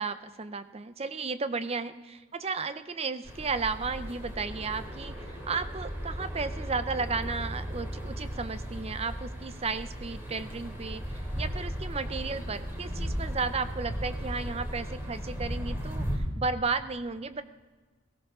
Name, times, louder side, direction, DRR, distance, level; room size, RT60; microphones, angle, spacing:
voice 1, 0.0-5.2 5.5-17.4, right 4 dB, 30° right, 11 dB, 0.6 m, -34 dB
sound 1, 3.2-16.2, equal, 10° right, 2.8 m, -36 dB
17.0 x 16.5 x 3.7 m, 1.3 s
head